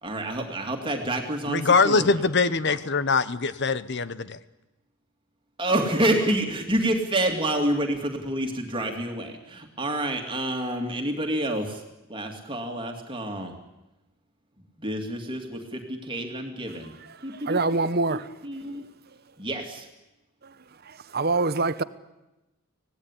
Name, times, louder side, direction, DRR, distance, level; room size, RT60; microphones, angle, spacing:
voice 1, 0.0-2.2 2.7-2.8 5.6-11.8 12.1-13.5 14.8-16.9 17.2-18.2 18.4-18.8 19.4-19.9, right 1 dB, 25° right, 2.5 m, -28 dB
voice 2, 1.5-4.4, left 4 dB, 55° left, 1.1 m, -23 dB
voice 3, 16.7-18.3 20.4-20.5 20.8-21.8, right 3 dB, 45° right, 1.0 m, -26 dB
25.0 x 18.0 x 9.9 m
head